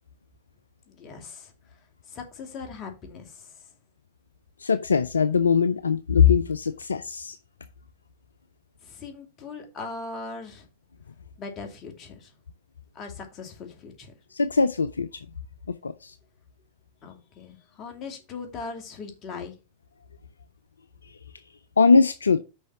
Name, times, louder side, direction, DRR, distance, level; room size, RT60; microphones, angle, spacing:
voice 1, 0.9-1.5 2.1-3.5 8.8-10.7 11.4-12.3 12.9-14.1 17.0-19.5, left 4 dB, 30° left, 2.6 m, -39 dB
voice 2, 4.6-7.4 14.3-15.1 15.8-16.1 21.8-22.4, left 5 dB, 75° left, 0.4 m, -21 dB
6.3 x 5.3 x 5.7 m
figure-of-eight pair, 90°, 0 cm